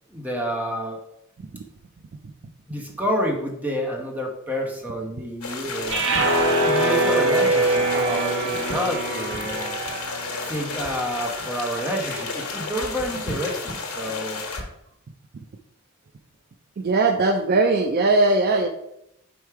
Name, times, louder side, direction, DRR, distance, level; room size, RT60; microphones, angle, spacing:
voice 1, 0.1-1.0 2.7-6.0 6.6-9.8 10.4-14.4, equal, 5° right, 0 dB, 1.0 m, -29 dB
sound 1, 5.4-14.6, left 4 dB, 70° left, 1.2 m, -32 dB
sound 2, 5.9-12.1, right 2 dB, 60° right, 1.1 m, -24 dB
voice 2, 16.8-18.7, right 2 dB, 45° right, 6 dB, 0.4 m, -19 dB
4.9 x 4.4 x 4.6 m, 0.82 s
head